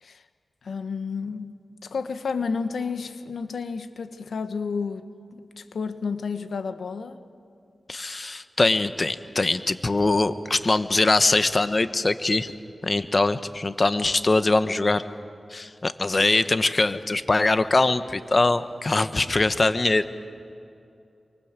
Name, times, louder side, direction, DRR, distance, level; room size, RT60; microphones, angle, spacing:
voice 1, 0.6-1.6 1.8-5.0 5.3-7.2, left 5 dB, 85° left, 10 dB, 1.3 m, -31 dB
voice 2, 7.9-12.5 12.8-15.0 15.5-20.2, left 2 dB, 45° left, 11 dB, 1.3 m, -22 dB
28.0 x 24.5 x 7.5 m, 2.6 s
cardioid pair, 45°, 0 cm